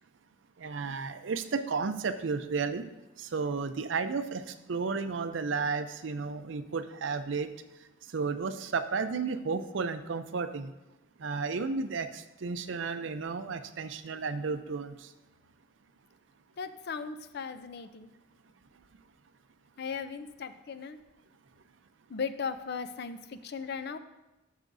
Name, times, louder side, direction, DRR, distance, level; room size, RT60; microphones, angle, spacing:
voice 1, 0.6-2.9 3.2-4.4 4.7-7.5 8.1-10.7 11.2-14.9, right 4 dB, 70° right, 10 dB, 0.5 m, -33 dB
voice 2, 16.6-18.1 19.8-21.0 22.1-24.0, left 5 dB, 60° left, 10 dB, 0.5 m, -37 dB
12.0 x 6.5 x 2.6 m, 1.0 s
head